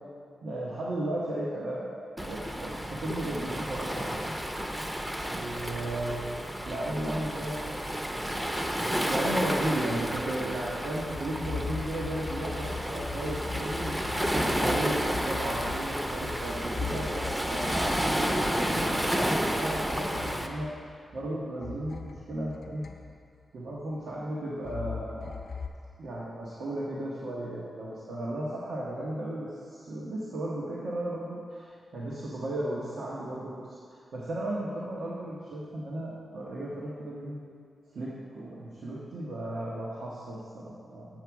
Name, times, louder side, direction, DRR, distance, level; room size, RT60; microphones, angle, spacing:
voice 1, 0.4-4.4 5.3-7.8 9.1-20.7 21.1-22.8 23.5-25.3 26.0-33.8 34.1-37.4 37.9-41.1, right 1 dB, 90° right, -7 dB, 1.0 m, -35 dB
Waves surf, 2.2-20.5, equal, 10° right, 0.5 m, -31 dB
sound 1, 11.0-21.3 21.6-23.4 24.6-25.7, left 5 dB, 60° left, 0.6 m, -40 dB
7.7 x 6.0 x 4.6 m, 2.2 s
wide cardioid pair, 115°, 0 cm